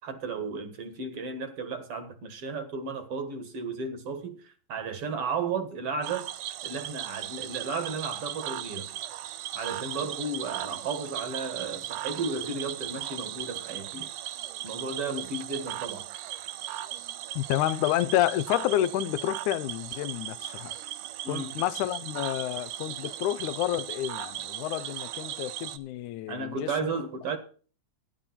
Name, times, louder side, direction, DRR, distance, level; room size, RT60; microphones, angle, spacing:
voice 1, 0.0-6.3 6.6-8.9 9.5-14.1 14.6-16.1 21.2-21.6 26.3-27.4, right 4 dB, 50° right, 2.4 m, -34 dB
Cricket / Frog, 6.0-25.8, right 13 dB, 90° right, 2.3 m, -37 dB
voice 2, 17.4-20.8 21.3-26.9, left 13 dB, 80° left, 2.1 m, -29 dB
12.5 x 10.5 x 4.1 m
omnidirectional pair, 3.5 m